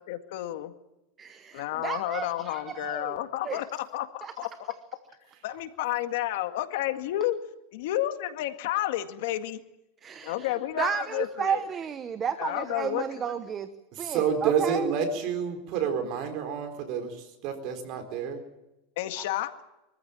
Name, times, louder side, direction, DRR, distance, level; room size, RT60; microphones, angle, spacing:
voice 1, 0.1-0.7 1.5-3.6 3.9-4.5 5.4-7.4 7.7-9.6 10.2-11.6 12.4-13.0 19.0-19.5, left 14 dB, 70° left, 8 dB, 1.9 m, -31 dB
voice 2, 1.2-3.2 3.4-3.6 4.2-4.3 10.0-10.5 10.8-13.7 14.0-14.9, right 7 dB, 25° right, 11 dB, 1.1 m, -32 dB
voice 3, 13.9-18.4, right 7 dB, 45° right, 6 dB, 4.3 m, -29 dB
24.0 x 14.5 x 8.9 m, 0.98 s
supercardioid pair, 150°, 0 cm